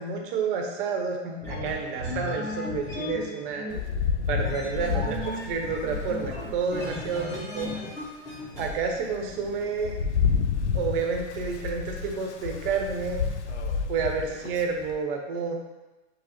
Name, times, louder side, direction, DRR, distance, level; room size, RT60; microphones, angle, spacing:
voice 1, 0.0-3.7 4.2-7.8 8.6-9.9 10.7-13.2 13.9-15.5, right 5 dB, 50° right, 2 dB, 0.8 m, -30 dB
sound 1, 1.4-8.7, left 1 dB, 10° left, 1.2 m, -35 dB
Rain, 3.7-7.2 7.8-7.9 8.3-14.9, left 6 dB, 80° left, 0.5 m, -30 dB
5.4 x 2.0 x 2.9 m, 1.1 s
hypercardioid pair, 110°, 34 cm